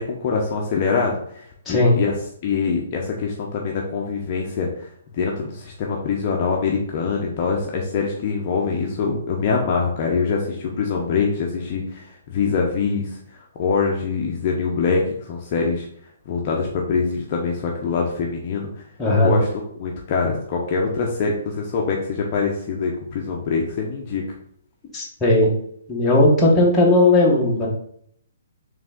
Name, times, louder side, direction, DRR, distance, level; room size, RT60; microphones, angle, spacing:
voice 1, 0.0-15.9 16.3-18.8 19.2-24.2, left 5 dB, 35° left, -1 dB, 0.6 m, -24 dB
voice 2, 19.0-19.3 24.9-25.5 25.9-27.7, left 2 dB, 10° left, -5 dB, 1.0 m, -16 dB
3.6 x 3.3 x 3.6 m, 0.66 s
hypercardioid pair, 160°, 0 cm